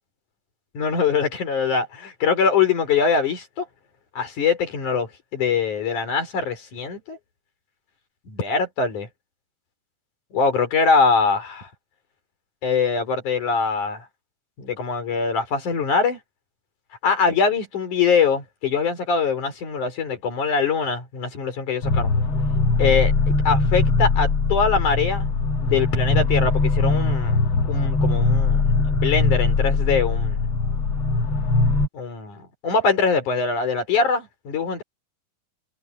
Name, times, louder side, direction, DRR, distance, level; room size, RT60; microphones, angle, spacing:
voice 1, 0.7-3.7 4.2-7.2 8.3-9.1 10.3-11.7 12.6-14.0 14.6-16.2 17.0-22.1 22.8-25.3 25.6-27.4 27.7-30.4 31.9-34.8, left 5 dB, 80° left, 5.9 m, -23 dB
sound 1, 21.8-31.9, left 3 dB, 50° left, 2.0 m, -21 dB
omnidirectional pair, 3.4 m